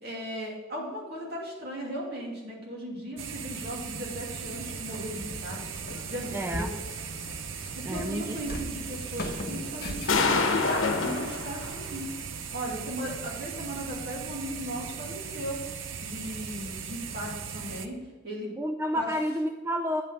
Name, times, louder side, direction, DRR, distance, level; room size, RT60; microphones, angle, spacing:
voice 1, 0.0-5.6 6.1-6.7 7.7-12.1 12.5-15.6 16.0-18.0 18.2-18.5 19.0-19.1, equal, 55° right, -3 dB, 2.6 m, -37 dB
sound 1, 3.2-17.9, right 6 dB, 80° right, 0.6 m, -38 dB
Walk footsteps, 4.3-12.5, left 1 dB, 50° left, 1.1 m, -42 dB
sound 2, 6.0-6.1 6.5-6.6 9.4-9.5 10.1-11.8, left 4 dB, 80° left, 1.0 m, -26 dB
voice 2, 6.3-6.7 7.8-8.4 18.6-20.0, equal, 10° right, 5 dB, 0.3 m, -30 dB
9.0 x 5.4 x 5.7 m, 1.3 s
head